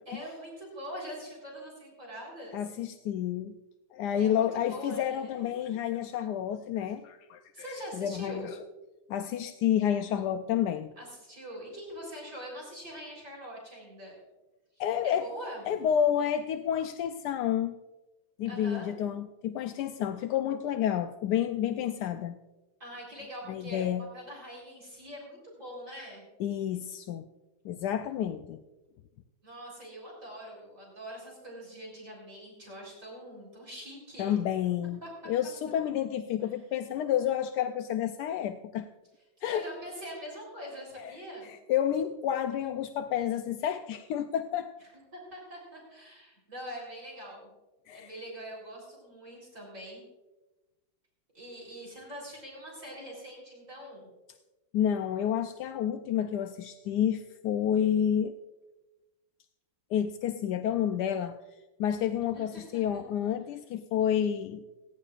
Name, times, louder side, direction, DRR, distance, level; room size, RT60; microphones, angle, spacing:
voice 1, 0.1-2.6 4.2-5.5 7.5-8.5 11.0-14.1 14.7-15.6 18.4-18.9 22.8-26.2 29.4-34.3 35.0-35.1 39.4-41.5 45.1-47.5 47.9-50.1 51.3-54.1 62.3-63.0, equal, 40° right, -3 dB, 4.2 m, -43 dB
voice 2, 2.5-3.5 3.9-7.4 7.9-8.6 9.1-10.9 14.8-15.3 15.7-17.7 18.4-22.4 23.5-24.0 26.4-27.3 27.6-28.6 34.2-35.0 35.3-38.9 39.4-39.6 41.0-41.1 41.5-44.7 47.9-48.1 54.7-58.3 59.9-61.4 61.8-64.6, left 9 dB, 75° left, 8 dB, 1.0 m, -30 dB
29.5 x 10.5 x 2.4 m, 1.1 s
omnidirectional pair, 2.2 m